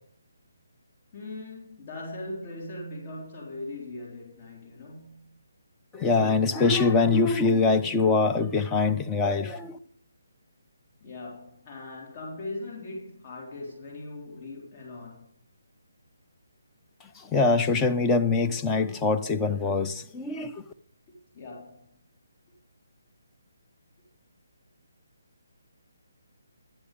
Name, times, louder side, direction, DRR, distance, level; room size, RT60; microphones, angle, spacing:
voice 1, 1.1-5.4 11.0-15.3 21.3-22.0, left 2 dB, 35° left, 3.8 m, -40 dB
voice 2, 5.9-9.8 17.3-20.5, left 4 dB, 15° left, 0.7 m, -23 dB
11.5 x 9.8 x 5.3 m
figure-of-eight pair, 145°, 0 cm